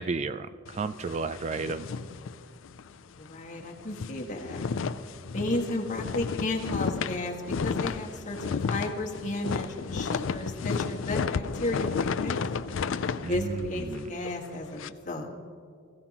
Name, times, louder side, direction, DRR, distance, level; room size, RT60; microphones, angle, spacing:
voice 1, 0.0-1.9 13.2-13.6 13.9-14.1, right 4 dB, 35° right, 13 dB, 0.3 m, -32 dB
sound 1, 0.7-2.9 3.3-3.4 3.7-14.9, left 5 dB, 80° left, 0.4 m, -33 dB
voice 2, 3.2-4.7 5.2-12.6 13.3-15.3, left 2 dB, 40° left, -1 dB, 1.7 m, -33 dB
20.0 x 15.5 x 3.0 m, 2.3 s
head